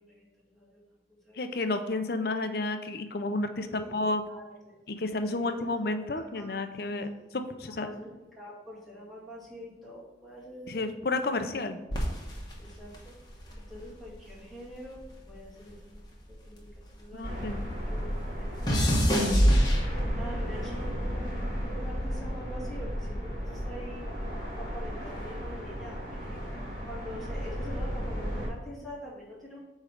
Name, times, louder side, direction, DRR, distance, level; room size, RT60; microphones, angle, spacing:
voice 1, 0.1-0.8 1.2-1.4 3.7-3.9 4.2-4.7 5.2-6.6 7.8-10.9 12.6-13.1 13.7-15.0 15.3-16.0 16.3-16.6 16.9-17.4 17.9-24.1 24.6-26.6 26.8-29.6, equal, ahead, -7 dB, 2.0 m, -45 dB
voice 2, 1.3-4.2 4.9-7.9 10.7-11.8 17.1-17.6, left 2 dB, 55° left, 8 dB, 0.6 m, -31 dB
sound 1, 11.9-14.4 14.7-17.3 17.6-20.4 21.2-21.5, equal, 20° left, 1.3 m, -27 dB
sound 2, 17.2-28.5, equal, 45° right, 1.9 m, -34 dB
8.5 x 3.2 x 5.0 m, 1.1 s
head